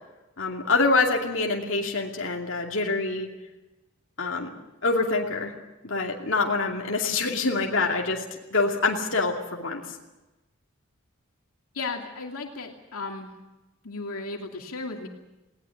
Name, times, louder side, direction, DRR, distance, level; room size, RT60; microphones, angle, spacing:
voice 1, 0.4-3.3 4.2-4.5 4.8-5.5 5.8-8.2 8.5-9.8, left 3 dB, 60° left, 0 dB, 2.6 m, -25 dB
voice 2, 11.7-13.3 13.8-15.1, left 3 dB, 85° left, 2 dB, 2.6 m, -35 dB
20.0 x 18.5 x 8.5 m, 1.0 s
head